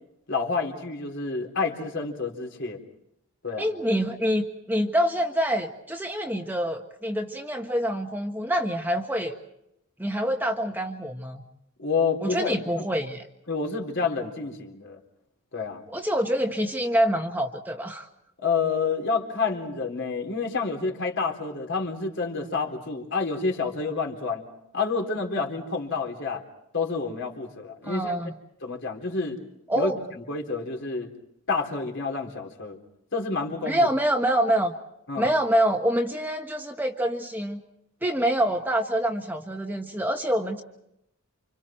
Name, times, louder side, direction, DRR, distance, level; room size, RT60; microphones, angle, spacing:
voice 1, 0.3-2.8 3.4-3.7 11.8-12.9 13.5-15.0 15.5-15.8 18.4-24.4 24.7-26.4 26.7-28.2 28.6-29.4 29.7-31.1 31.5-32.8 33.1-33.9 35.1-35.3, left 4 dB, 55° left, 2 dB, 4.0 m, -29 dB
voice 2, 3.6-9.4 10.0-11.4 12.2-13.2 15.9-18.1 27.8-28.3 29.7-30.0 33.6-34.7 35.2-37.6 38.0-40.6, right 1 dB, 10° right, 3 dB, 1.4 m, -26 dB
29.5 x 27.5 x 4.5 m, 0.79 s
head